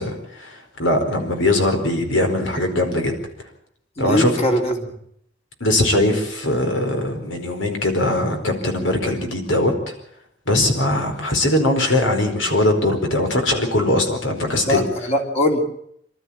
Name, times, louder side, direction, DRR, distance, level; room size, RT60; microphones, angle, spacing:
voice 1, 0.0-3.2 4.0-4.3 5.6-9.9 10.5-14.9, left 1 dB, 75° left, 5 dB, 4.6 m, -20 dB
voice 2, 4.0-4.9 14.6-15.6, equal, 35° left, 3 dB, 3.5 m, -21 dB
26.0 x 13.5 x 8.9 m, 0.70 s
head